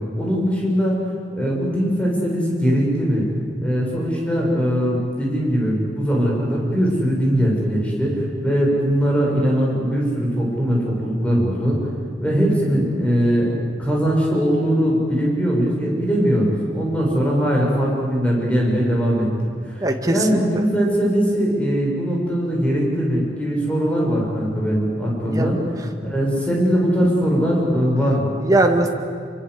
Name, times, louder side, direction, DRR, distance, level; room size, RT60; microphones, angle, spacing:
voice 1, 0.1-1.0 1.3-3.2 3.6-11.8 12.2-13.5 13.8-19.3 19.6-19.8 20.1-25.6 26.0-28.3, equal, 5° left, -3 dB, 6.8 m, -20 dB
voice 2, 19.8-20.6 25.3-25.5 28.4-28.9, right 2 dB, 20° right, 4 dB, 1.9 m, -20 dB
26.0 x 24.0 x 8.1 m, 2.1 s
head